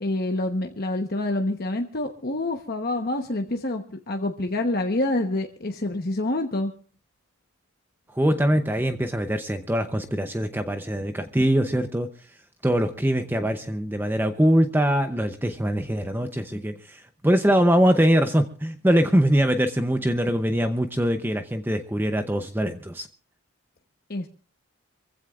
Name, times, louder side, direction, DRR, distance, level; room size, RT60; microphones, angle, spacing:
voice 1, 0.0-6.7 24.1-24.3, left 2 dB, 45° left, 3 dB, 1.0 m, -27 dB
voice 2, 8.1-12.1 12.6-23.1, equal, 10° right, 7 dB, 0.7 m, -23 dB
26.0 x 15.5 x 2.4 m, 0.40 s
head